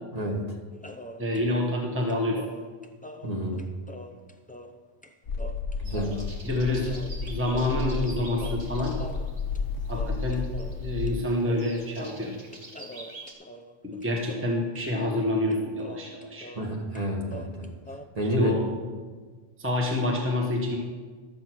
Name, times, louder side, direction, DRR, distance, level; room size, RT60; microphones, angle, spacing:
voice 1, 0.1-0.6 3.2-3.6 5.8-6.2 16.5-17.7 18.2-18.6, equal, 35° right, -1 dB, 1.7 m, -29 dB
sound 1, 0.8-4.8 5.0-5.1 5.4-6.6 6.8-8.1 8.4-10.8 11.1-11.2 11.4-16.7 16.9-18.0, equal, 10° left, 0.4 m, -44 dB
voice 2, 1.2-2.4 6.4-6.9 7.2-9.0 9.9-10.4 10.8-12.3 13.8-16.5 18.4-18.6 19.6-20.8, left 1 dB, 10° right, -1 dB, 1.2 m, -27 dB
sound 2, 5.3-11.1, left 4 dB, 85° left, 0.9 m, -32 dB
sound 3, 5.8-13.3, right 2 dB, 60° right, 1.8 m, -48 dB
12.5 x 7.2 x 6.1 m, 1.5 s
omnidirectional pair, 1.1 m